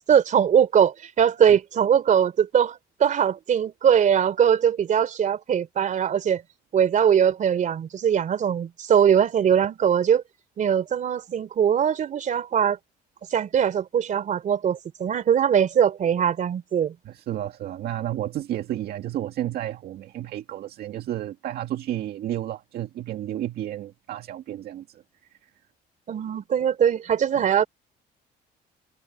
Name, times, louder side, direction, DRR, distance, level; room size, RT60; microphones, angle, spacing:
voice 1, 0.1-6.4 6.7-10.2 10.6-12.8 13.3-16.9 26.1-27.7, right 8 dB, 50° right, 3.5 m, -21 dB
voice 2, 17.1-25.0 27.4-27.5, right 12 dB, 65° right, 2.1 m, -31 dB
cardioid pair, 110°, 17 cm